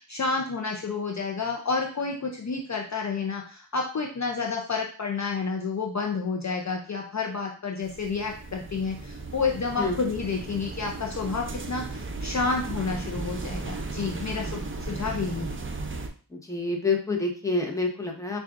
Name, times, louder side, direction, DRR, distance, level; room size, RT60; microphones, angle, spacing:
voice 1, 0.0-15.6, left 4 dB, 45° left, 1 dB, 0.6 m, -30 dB
sound 1, 7.8-16.1, right 3 dB, 30° right, 0.6 m, -36 dB
voice 2, 16.3-18.4, left 3 dB, 10° left, 0 dB, 1.0 m, -27 dB
6.5 x 2.4 x 2.5 m, 0.40 s
wide cardioid pair, 60°, 40 cm